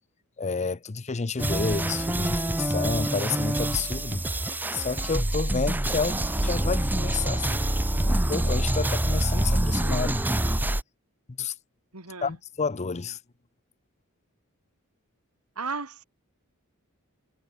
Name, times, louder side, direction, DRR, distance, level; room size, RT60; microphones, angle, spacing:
voice 1, 0.4-4.2 4.7-7.6 8.1-10.2 11.3-11.5 12.2-13.2, left 4 dB, 30° left, 0.6 m, -30 dB
sound 1, 1.4-10.8, right 1 dB, 10° right, 0.6 m, -26 dB
voice 2, 11.9-12.3 15.6-16.0, right 4 dB, 90° right, 4.8 m, -34 dB
head